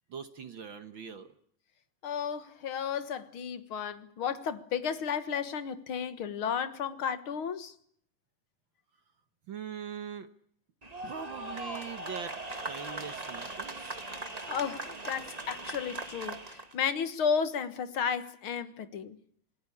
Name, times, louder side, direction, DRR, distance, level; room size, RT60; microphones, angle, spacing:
voice 1, 0.1-1.3 9.5-10.3 11.0-14.0, right 7 dB, 55° right, 1.4 m, -42 dB
voice 2, 2.0-7.7 14.5-19.2, left 7 dB, 50° left, 1.8 m, -33 dB
sound 1, 10.8-16.7, right 2 dB, 20° right, 1.1 m, -39 dB
28.0 x 19.5 x 8.6 m
omnidirectional pair, 3.7 m